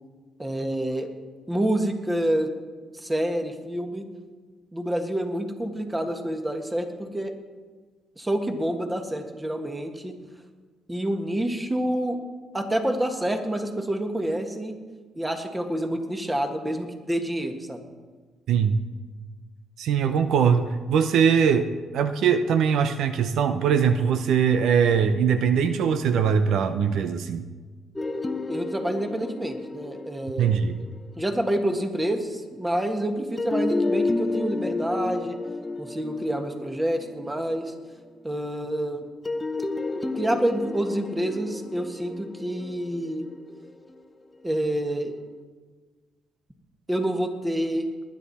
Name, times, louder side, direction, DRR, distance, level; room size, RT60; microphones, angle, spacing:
voice 1, 0.4-1.1 1.5-2.5 2.9-4.1 4.7-7.3 8.2-10.2 10.9-12.2 12.5-14.7 15.2-17.8 28.5-30.5 31.1-35.3 35.8-37.7 38.2-39.1 40.1-43.3 44.4-45.1 46.9-47.9, right 1 dB, 15° right, 5 dB, 1.7 m, -28 dB
voice 2, 18.5-18.8 19.8-27.4 30.4-30.8, right 7 dB, 80° right, 10 dB, 0.7 m, -22 dB
sound 1, 28.0-31.8 33.4-37.8 39.3-44.4, left 3 dB, 20° left, 0.9 m, -31 dB
19.5 x 10.5 x 4.2 m, 1.4 s
cardioid pair, 90°, 0 cm